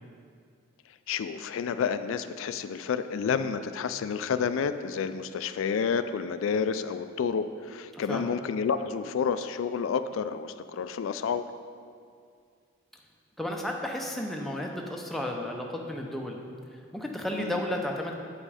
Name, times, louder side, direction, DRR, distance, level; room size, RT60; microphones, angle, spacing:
voice 1, 1.1-11.5 17.4-17.6, left 6 dB, 80° left, 11 dB, 0.3 m, -30 dB
voice 2, 7.9-8.3 13.4-16.4 16.9-18.1, left 1 dB, ahead, 0 dB, 0.6 m, -33 dB
8.4 x 5.2 x 4.9 m, 2.2 s
head